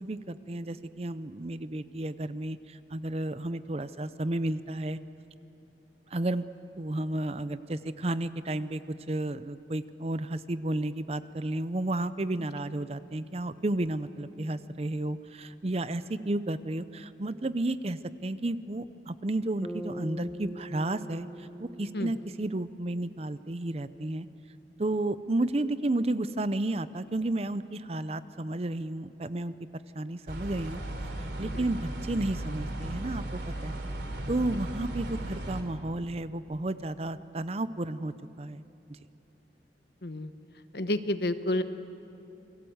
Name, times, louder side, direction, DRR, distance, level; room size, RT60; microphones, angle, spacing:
voice 1, 0.0-5.0 6.1-6.4 6.8-8.8 9.1-24.3 24.8-29.5 29.9-30.8 31.4-33.8 34.3-38.6, right 2 dB, 35° right, 13 dB, 0.6 m, -32 dB
Bass guitar, 19.6-24.0, equal, 5° left, 1.2 m, -43 dB
sound 1, 30.3-35.6, right 1 dB, 80° right, 3.1 m, -36 dB
voice 2, 40.0-40.3 40.7-41.6, left 1 dB, 65° left, 10 dB, 1.1 m, -30 dB
29.0 x 22.0 x 8.0 m, 2.8 s
head